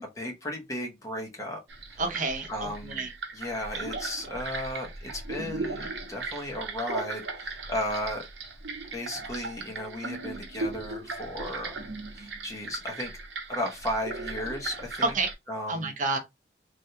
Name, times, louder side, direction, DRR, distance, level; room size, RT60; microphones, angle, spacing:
voice 1, 0.0-1.6 1.9-2.0 2.5-3.0 3.3-8.3 8.9-11.8 12.1-13.1 13.5-15.1 15.5-15.9, left 1 dB, 20° left, 0.9 m, -35 dB
sound 1, 1.7-15.3, right 3 dB, 90° right, 0.7 m, -37 dB
voice 2, 2.0-3.1 15.0-15.3 15.7-16.2, right 3 dB, 45° right, 0.6 m, -29 dB
3.3 x 2.2 x 2.8 m
head